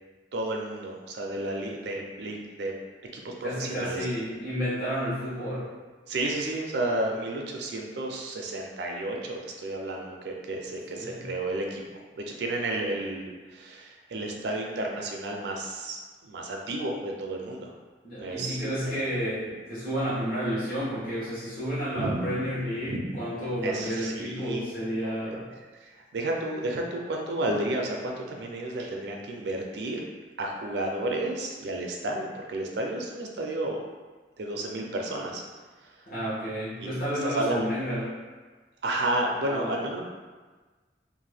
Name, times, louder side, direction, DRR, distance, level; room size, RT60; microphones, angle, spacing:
voice 1, 0.3-2.7 3.1-4.1 6.1-11.8 12.2-17.7 18.2-19.0 21.9-22.4 22.8-23.2 23.6-24.7 25.3-25.4 25.8-30.0 30.4-33.8 34.4-35.4 35.8-35.9 37.2-37.7 38.8-40.0, right 1 dB, 75° right, 1 dB, 0.4 m, -32 dB
voice 2, 3.4-5.7 10.9-11.3 18.0-25.5 36.1-38.2 39.5-39.8, equal, 55° left, -11 dB, 1.0 m, -31 dB
2.6 x 2.1 x 3.3 m, 1.3 s
head